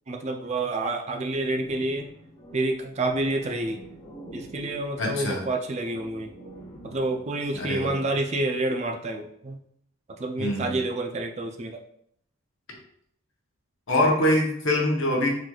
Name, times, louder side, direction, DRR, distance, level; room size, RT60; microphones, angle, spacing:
voice 1, 0.1-2.1 2.5-3.8 4.3-6.3 6.8-9.6 10.1-11.8, right 2 dB, 30° right, 4 dB, 0.3 m, -28 dB
sound 1, 1.2-8.2, equal, 35° left, 1.3 m, -46 dB
voice 2, 5.0-5.4 7.5-7.9 10.4-10.8 13.9-15.3, left 1 dB, 60° left, -1 dB, 0.9 m, -24 dB
4.0 x 3.0 x 2.3 m, 0.68 s
head